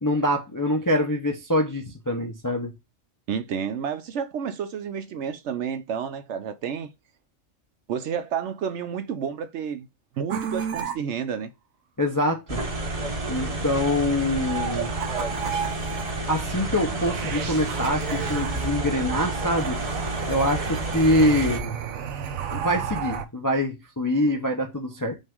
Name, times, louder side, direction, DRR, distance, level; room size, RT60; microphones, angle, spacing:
voice 1, 0.0-2.7 12.0-12.7 13.3-14.9 15.4-15.6 16.3-19.8 20.3-21.8 22.5-25.2, left 1 dB, 25° left, 0.4 m, -25 dB
voice 2, 3.3-6.9 7.9-9.9 10.2-11.5, right 7 dB, 65° right, 0.8 m, -30 dB
sound 1, 10.3-10.9 14.2-23.2, right 8 dB, 85° right, 1.1 m, -33 dB
sound 2, 12.5-21.6, right 2 dB, 30° right, 0.8 m, -30 dB
5.3 x 2.5 x 3.5 m
omnidirectional pair, 1.4 m